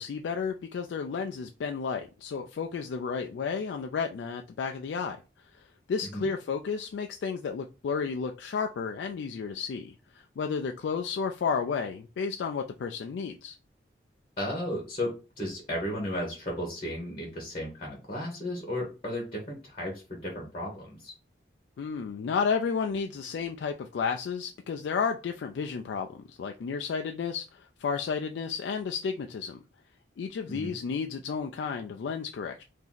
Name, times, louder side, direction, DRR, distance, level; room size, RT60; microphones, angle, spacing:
voice 1, 0.0-5.2 5.5-5.6 5.9-13.6 21.8-29.6 30.2-32.6, left 5 dB, 80° left, 4 dB, 0.3 m, -32 dB
voice 2, 14.4-21.1 30.5-30.8, left 1 dB, 30° left, -1 dB, 1.1 m, -34 dB
2.9 x 2.6 x 3.9 m, 0.32 s
head